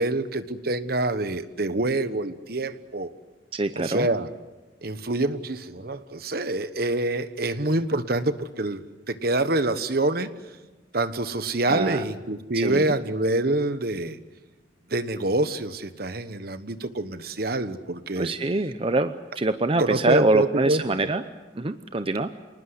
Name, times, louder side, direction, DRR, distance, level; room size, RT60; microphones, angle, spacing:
voice 1, 0.0-3.1 3.8-4.3 4.8-8.8 9.1-10.3 10.9-14.2 14.9-18.3 19.8-21.1, right 2 dB, 55° right, 12 dB, 1.2 m, -26 dB
voice 2, 3.5-4.1 11.7-12.0 12.5-12.9 18.2-21.2 21.6-22.3, right 2 dB, 30° right, 10 dB, 0.7 m, -24 dB
27.5 x 19.5 x 8.0 m, 1.2 s
head